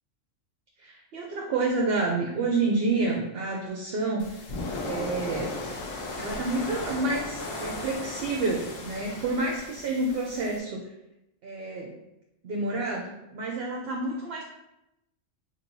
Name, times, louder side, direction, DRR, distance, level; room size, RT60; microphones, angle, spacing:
voice 1, 0.8-4.5 4.8-5.6 6.2-10.9 11.4-12.0 12.4-14.4, right 3 dB, 60° right, -1 dB, 0.7 m, -29 dB
sound 1, 4.2-10.6, left 2 dB, 80° left, 1.1 m, -36 dB
4.4 x 3.0 x 2.6 m, 0.90 s
omnidirectional pair, 1.4 m